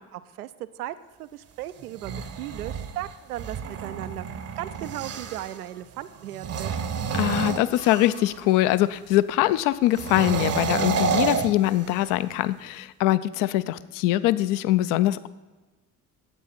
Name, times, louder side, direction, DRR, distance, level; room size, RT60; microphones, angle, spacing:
voice 1, 0.1-4.3 4.6-6.8, right 13 dB, 75° right, 13 dB, 0.5 m, -36 dB
sound 1, 1.8-5.6 6.3-8.4 9.9-12.2, right 6 dB, 35° right, 0.8 m, -29 dB
voice 2, 7.1-15.3, left 15 dB, 50° left, 16 dB, 0.5 m, -23 dB
9.8 x 8.4 x 4.3 m, 1.2 s
figure-of-eight pair, 50°, 45 cm